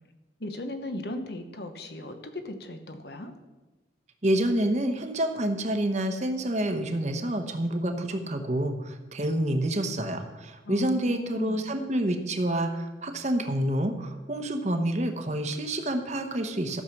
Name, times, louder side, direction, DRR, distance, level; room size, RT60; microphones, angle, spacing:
voice 1, 0.4-3.3 10.6-11.7, left 1 dB, 65° left, 7 dB, 1.1 m, -37 dB
voice 2, 4.2-16.8, right 1 dB, 40° right, 6 dB, 1.0 m, -28 dB
13.5 x 6.7 x 5.9 m, 1.2 s
head